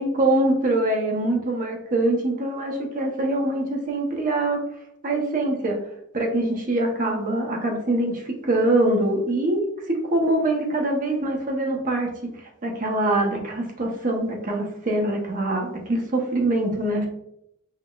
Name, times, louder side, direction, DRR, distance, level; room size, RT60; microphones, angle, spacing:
voice 1, 0.0-4.6 5.0-5.8 6.1-12.1 12.4-17.1, right 1 dB, 40° right, 1 dB, 0.7 m, -24 dB
5.6 x 2.0 x 2.3 m, 0.75 s
head